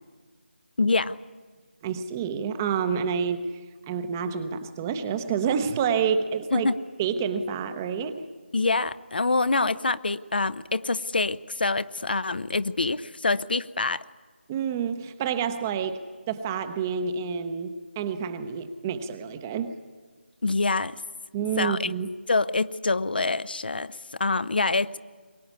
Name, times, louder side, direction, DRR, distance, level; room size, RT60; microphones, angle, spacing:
voice 1, 0.8-1.2 6.5-6.8 8.5-14.0 20.4-21.0 21.6-21.9 22.3-25.0, left 3 dB, 55° left, 15 dB, 0.8 m, -25 dB
voice 2, 1.8-3.5 3.9-6.7 7.0-8.3 14.5-19.7 21.3-22.1, right 7 dB, 15° right, 10 dB, 0.8 m, -28 dB
22.5 x 20.0 x 9.7 m, 1.4 s
figure-of-eight pair, 165°, 6 cm